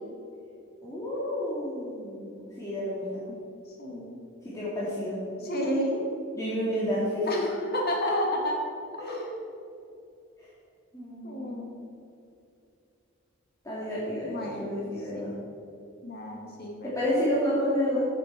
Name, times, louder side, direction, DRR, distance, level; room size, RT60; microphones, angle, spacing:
voice 1, 0.8-3.2 4.4-5.2 6.3-7.3 9.0-9.2 10.4-10.5 10.9-11.6 13.6-15.3 16.8-18.1, equal, 15° left, -9 dB, 2.5 m, -30 dB
voice 2, 3.8-4.2 5.4-6.0 7.3-8.6 9.0-9.3 11.2-11.7 14.2-14.9 16.0-16.9, left 1 dB, 50° left, 0 dB, 1.8 m, -31 dB
14.0 x 7.5 x 4.7 m, 2.6 s
head